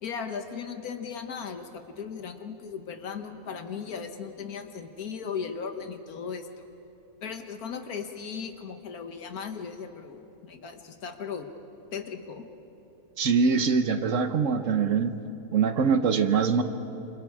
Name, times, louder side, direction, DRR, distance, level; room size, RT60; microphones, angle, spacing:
voice 1, 0.0-6.7 7.2-11.5 11.9-12.5, left 6 dB, 80° left, 7 dB, 1.7 m, -37 dB
voice 2, 13.2-15.1 15.5-16.6, right 5 dB, 60° right, 9 dB, 1.2 m, -23 dB
28.0 x 26.5 x 4.9 m, 2.9 s
omnidirectional pair, 1.5 m